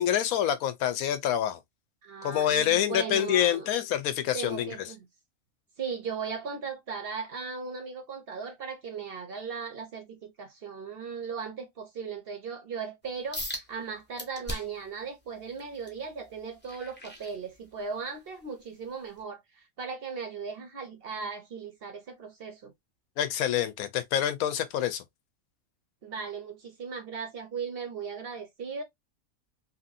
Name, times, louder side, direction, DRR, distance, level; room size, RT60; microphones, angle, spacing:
voice 1, 0.0-1.6 2.2-4.9 23.2-25.0, left 10 dB, 90° left, 1.1 m, -27 dB
voice 2, 2.0-3.7 4.3-5.0 5.8-19.4 19.8-22.7 26.0-28.8, right 5 dB, 50° right, 0.8 m, -37 dB
sound 1, 13.3-13.7 14.2-14.9 15.4-17.9 18.4-18.6 19.2-19.3, equal, 10° left, 0.7 m, -39 dB
2.9 x 2.7 x 2.5 m
omnidirectional pair, 1.4 m